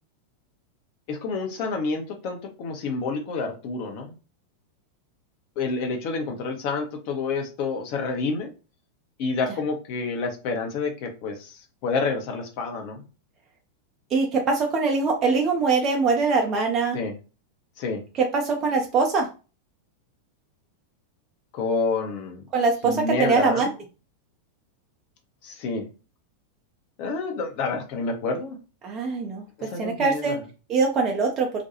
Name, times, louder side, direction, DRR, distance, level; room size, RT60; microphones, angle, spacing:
voice 1, 1.1-4.1 5.6-8.5 9.2-13.0 16.9-17.1 17.8-18.0 21.5-22.4 22.8-23.7 25.4-25.9 27.0-28.6 29.6-30.4, left 4 dB, 45° left, 3 dB, 0.7 m, -28 dB
voice 2, 14.1-17.0 18.2-19.3 22.5-23.7 28.8-29.4 29.8-30.4 30.7-31.5, right 4 dB, 30° right, 0 dB, 0.5 m, -22 dB
2.4 x 2.3 x 2.8 m, 0.33 s
figure-of-eight pair, 90°, 0 cm